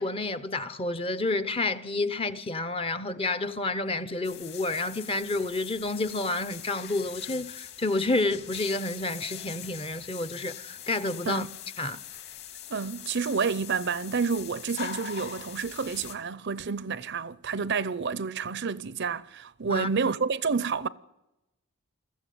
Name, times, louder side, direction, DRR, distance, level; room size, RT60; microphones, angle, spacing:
voice 1, 0.0-11.5 11.8-12.0 19.7-19.9, left 2 dB, 25° left, 0.8 m, -29 dB
sound 1, 4.2-16.1, left 9 dB, 50° left, 2.6 m, -42 dB
voice 2, 11.3-11.6 12.7-20.9, right 5 dB, 50° right, 0.6 m, -29 dB
22.0 x 14.5 x 9.3 m
head